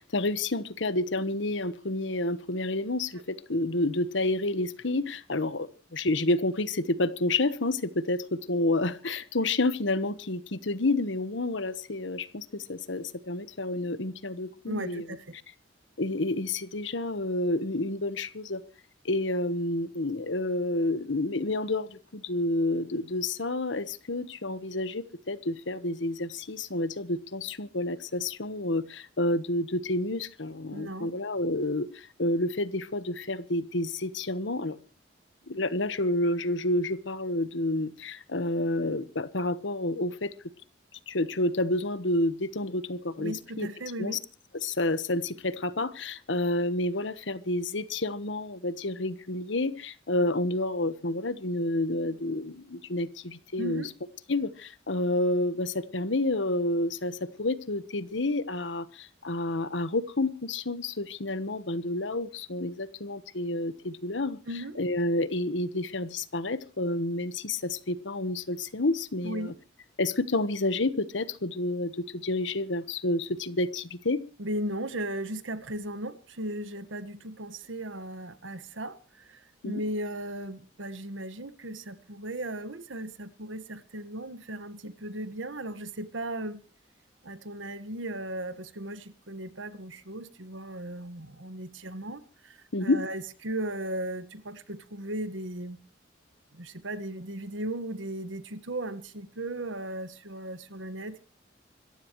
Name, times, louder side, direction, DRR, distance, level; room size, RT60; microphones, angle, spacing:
voice 1, 0.0-15.0 16.0-18.6 19.0-34.8 35.5-40.3 41.1-43.7 44.0-44.2 44.6-53.8 54.3-64.4 64.8-69.5 70.0-74.2 79.6-79.8 92.7-93.0, left 2 dB, 75° left, 1.2 m, -29 dB
voice 2, 14.7-15.4 30.7-31.1 43.2-44.2 53.6-53.9 64.5-64.8 69.2-69.5 74.4-86.6 87.2-95.8 96.5-101.3, right 1 dB, 90° right, 1.6 m, -36 dB
26.0 x 14.5 x 3.2 m
head